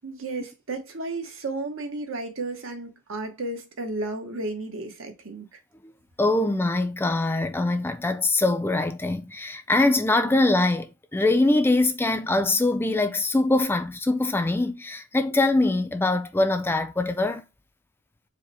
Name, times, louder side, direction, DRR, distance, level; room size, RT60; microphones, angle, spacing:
voice 1, 0.0-5.6, right 2 dB, 80° right, 1.1 m, -33 dB
voice 2, 6.2-17.4, left 2 dB, 10° left, 0.3 m, -23 dB
4.8 x 2.1 x 4.0 m
head